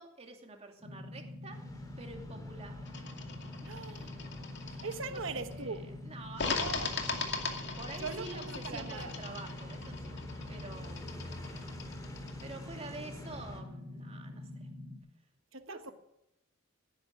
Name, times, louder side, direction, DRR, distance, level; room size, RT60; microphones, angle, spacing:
voice 1, 0.0-3.0 4.0-4.3 4.7-10.2 10.5-11.6 12.4-14.7 15.7-15.9, right 2 dB, 30° right, 3 dB, 2.7 m, -49 dB
sound 1, 0.8-15.0, left 1 dB, 15° right, 3.2 m, -45 dB
sound 2, 1.5-13.6, left 1 dB, 20° left, 2.6 m, -50 dB
sound 3, 2.9-5.5 6.3-12.5, left 4 dB, 60° left, 2.3 m, -40 dB
voice 2, 3.6-4.1 4.8-5.9 6.4-6.9 8.0-9.1 15.5-15.9, right 4 dB, 70° right, 9 dB, 1.2 m, -40 dB
18.0 x 9.9 x 8.2 m, 0.90 s
head